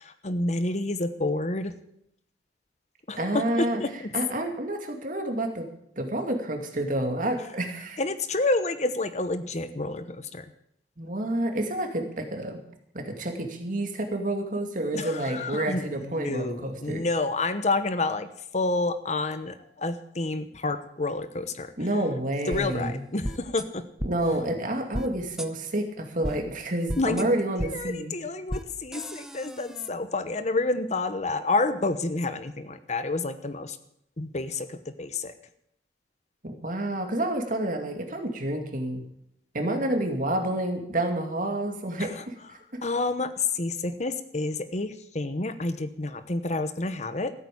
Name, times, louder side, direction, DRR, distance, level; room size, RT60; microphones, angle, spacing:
voice 1, 0.0-1.7 3.1-3.9 8.0-10.5 14.9-21.7 22.5-23.8 27.0-33.8 34.2-35.3 42.0-42.2 42.8-47.3, left 2 dB, 40° left, 11 dB, 1.0 m, -29 dB
voice 2, 3.2-3.8 4.1-5.7 6.0-8.0 11.0-12.6 12.9-17.0 21.8-23.0 24.0-28.2 36.4-39.0 39.5-42.3, right 1 dB, 50° right, 4 dB, 2.4 m, -29 dB
sound 1, 22.5-22.6 23.2-23.6 24.0-24.1 24.9-25.1 25.4-25.5 26.2-26.4 26.9-27.2 27.6-27.7 28.5-28.6 28.9-29.9, equal, 5° right, 0.8 m, -33 dB
15.0 x 8.9 x 8.5 m, 0.74 s
head